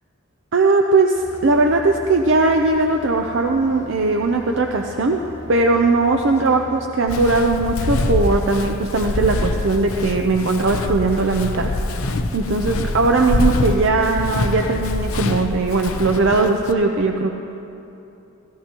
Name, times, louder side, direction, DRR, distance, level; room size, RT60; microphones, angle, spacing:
voice 1, 0.5-5.2 5.5-11.7 12.3-17.3, right 3 dB, 60° right, 3 dB, 0.6 m, -19 dB
sound 1, 1.1-6.8, left 1 dB, 15° left, 2.5 m, -40 dB
Walk footsteps, 7.1-16.7, left 2 dB, 90° left, 0.7 m, -24 dB
17.0 x 14.5 x 3.0 m, 2.9 s
head